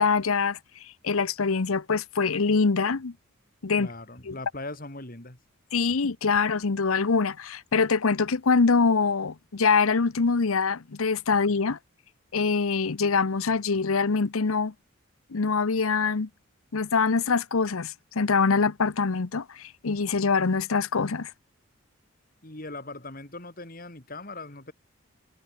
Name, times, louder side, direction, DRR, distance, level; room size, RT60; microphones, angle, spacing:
voice 1, 0.0-3.1 3.6-3.9 4.2-4.4 5.7-11.8 12.3-14.7 15.3-16.3 16.7-21.3, left 4 dB, 80° left, 0.8 m, -24 dB
voice 2, 3.8-5.4 22.4-24.7, left 2 dB, 40° left, 3.2 m, -40 dB
head